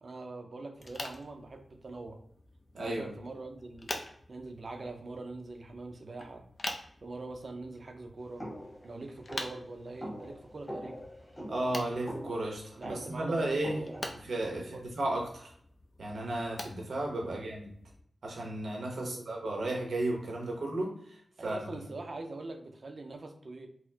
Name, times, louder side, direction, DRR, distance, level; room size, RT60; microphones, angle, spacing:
voice 1, 0.0-2.2 2.8-3.9 4.3-6.5 7.0-8.5 8.8-11.1 12.8-14.8 17.2-17.4 19.0-19.4 21.4-23.7, right 3 dB, 55° right, 4 dB, 0.5 m, -43 dB
sound 1, 0.7-18.0, left 2 dB, 40° left, 0.5 m, -46 dB
voice 2, 2.7-3.1 11.5-13.8 14.3-15.5 16.0-17.7 18.2-21.0 21.4-21.6, right 1 dB, 85° right, 0 dB, 0.9 m, -34 dB
sound 2, 8.4-14.1, equal, 20° left, 1.2 m, -44 dB
4.2 x 2.0 x 2.7 m, 0.63 s
wide cardioid pair, 100°, 0 cm